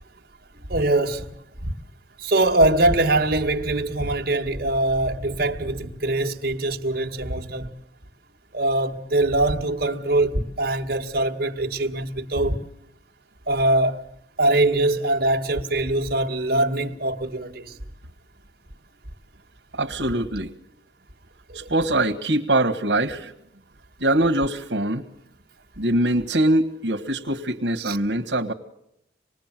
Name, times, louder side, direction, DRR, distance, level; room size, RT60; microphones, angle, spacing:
voice 1, 0.7-1.3 1.6-1.7 2.2-7.7 8.5-12.6 13.5-14.1 14.4-17.8 21.5-21.7 27.8-28.0, right 2 dB, 60° right, 2.1 m, -23 dB
voice 2, 19.7-20.5 21.5-23.3 24.0-25.0 25.8-28.5, right 1 dB, 85° right, 1.6 m, -23 dB
27.0 x 20.0 x 7.6 m
head